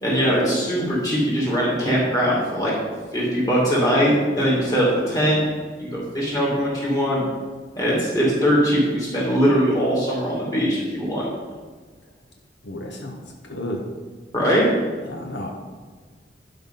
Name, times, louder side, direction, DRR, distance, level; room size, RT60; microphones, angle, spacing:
voice 1, 0.0-2.7 3.1-5.5 5.8-7.2 7.8-11.3 14.3-14.8, equal, 20° left, -6 dB, 2.7 m, -21 dB
voice 2, 12.6-13.2 13.5-13.9 15.0-15.5, left 1 dB, 85° left, 1 dB, 1.0 m, -32 dB
11.5 x 5.6 x 3.9 m, 1.4 s
head